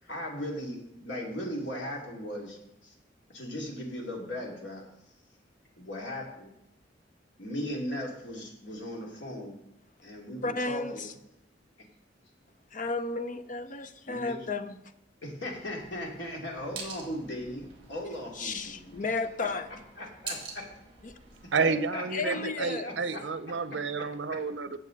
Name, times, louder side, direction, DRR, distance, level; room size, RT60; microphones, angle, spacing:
voice 1, 0.0-2.9 3.3-4.8 5.8-6.5 7.4-9.6 10.0-11.1 14.1-14.3 15.2-18.9 19.4-19.5 20.0-20.6 21.6-22.4 22.8-23.2, left 1 dB, 80° left, 2.9 m, -37 dB
voice 2, 10.4-11.1 12.7-14.8 18.4-19.7 21.0-21.2 22.1-22.9, left 3 dB, 45° left, 0.7 m, -33 dB
sound 1, 15.5-21.5, right 4 dB, 30° right, 3.4 m, -46 dB
voice 3, 21.5-24.8, right 4 dB, 85° right, 0.6 m, -30 dB
15.0 x 8.1 x 4.0 m
head